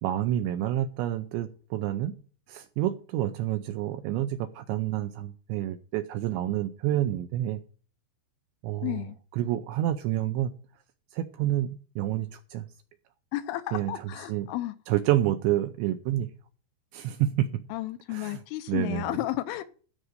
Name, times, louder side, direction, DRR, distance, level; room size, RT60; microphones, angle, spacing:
voice 1, 0.0-2.2 2.5-7.6 8.6-9.1 9.3-10.5 11.1-12.6 13.7-14.5 14.9-16.3 16.9-17.6 18.1-18.4 18.7-19.1, right 13 dB, 85° right, 9 dB, 2.6 m, -28 dB
voice 2, 8.8-9.2 13.3-14.7 17.7-19.6, left 16 dB, 80° left, 11 dB, 3.0 m, -32 dB
13.0 x 5.3 x 7.7 m, 0.40 s
omnidirectional pair, 5.8 m